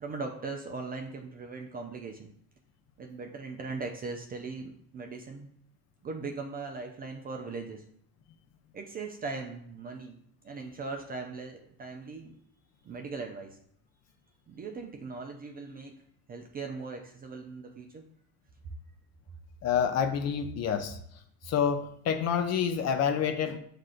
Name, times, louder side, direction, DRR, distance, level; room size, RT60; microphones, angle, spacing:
voice 1, 0.0-2.3 3.0-5.5 6.0-7.8 8.7-10.2 10.4-12.4 12.8-13.6 14.5-15.9 16.3-18.1, right 4 dB, 25° right, 3 dB, 0.3 m, -39 dB
voice 2, 19.6-21.0 21.4-23.6, left 7 dB, 40° left, 7 dB, 0.5 m, -28 dB
7.2 x 2.5 x 2.4 m, 0.67 s
hypercardioid pair, 80°, 43 cm